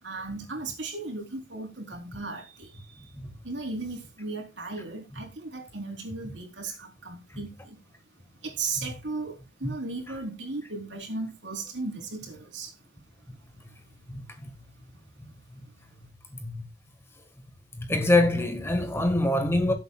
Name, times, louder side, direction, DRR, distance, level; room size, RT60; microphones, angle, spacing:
voice 1, 0.0-3.1 3.4-7.8 8.4-12.8, right 3 dB, 70° right, 4.1 m, -36 dB
voice 2, 14.1-14.5 16.4-16.7 17.8-19.7, left 2 dB, 15° left, 1.7 m, -25 dB
18.0 x 8.2 x 2.4 m
head